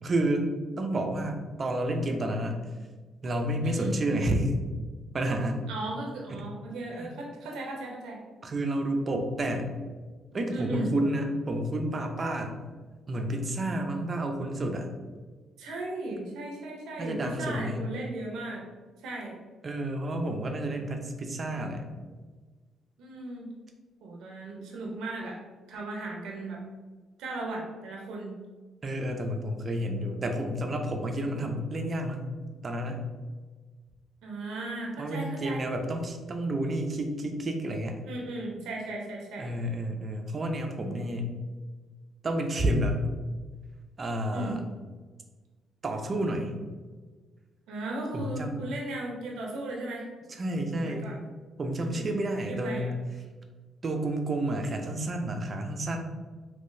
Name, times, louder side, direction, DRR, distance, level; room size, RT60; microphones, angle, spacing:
voice 1, 0.0-0.5 0.8-2.6 3.2-4.5 5.1-5.6 6.3-6.4 7.0-7.1 8.4-9.7 10.3-12.6 13.1-14.9 17.0-17.8 19.6-21.9 28.8-32.3 32.6-33.0 35.0-38.0 39.4-41.3 42.2-43.0 44.0-44.6 45.8-46.5 48.1-48.6 50.4-51.0 51.6-52.9 53.8-56.0, right 1 dB, 40° right, 4 dB, 0.5 m, -30 dB
voice 2, 3.6-3.9 5.7-8.2 10.5-10.9 15.6-18.6 19.0-19.4 23.0-23.5 24.0-25.4 25.7-26.6 27.2-28.3 34.2-35.7 38.0-39.5 44.3-44.6 47.7-50.1 50.8-51.2 51.9-52.2 52.5-52.9, right 2 dB, 85° right, -1 dB, 0.6 m, -36 dB
3.7 x 2.8 x 2.6 m, 1.4 s
cardioid pair, 90°, 0 cm